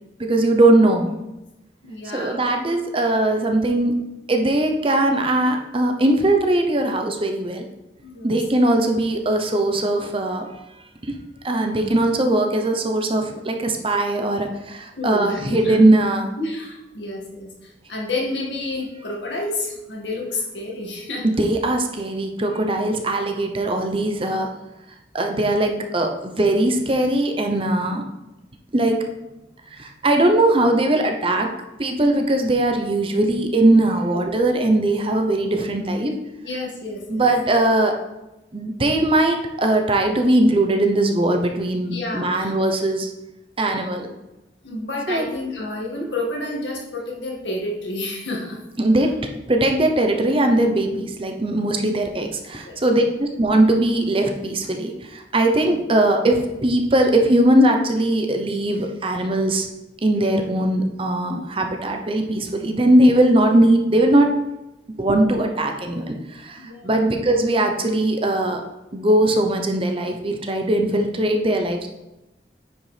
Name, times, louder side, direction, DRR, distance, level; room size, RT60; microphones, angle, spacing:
voice 1, 0.2-1.1 2.1-3.9 4.3-7.6 8.2-10.5 11.0-11.2 11.4-16.3 21.2-24.5 25.1-28.0 28.7-29.0 29.7-31.5 31.8-36.1 37.1-37.9 38.5-43.1 43.6-44.1 45.1-45.2 48.8-49.2 49.5-59.7 60.0-64.4 65.0-68.6 68.9-71.9, right 1 dB, 30° right, 4 dB, 0.8 m, -20 dB
voice 2, 1.8-2.4 8.0-8.4 14.9-15.8 16.4-21.3 36.4-37.3 41.8-42.5 44.6-48.6 52.6-52.8 66.6-67.1, left 2 dB, 85° left, -2 dB, 2.0 m, -30 dB
9.5 x 5.1 x 3.4 m, 0.96 s
head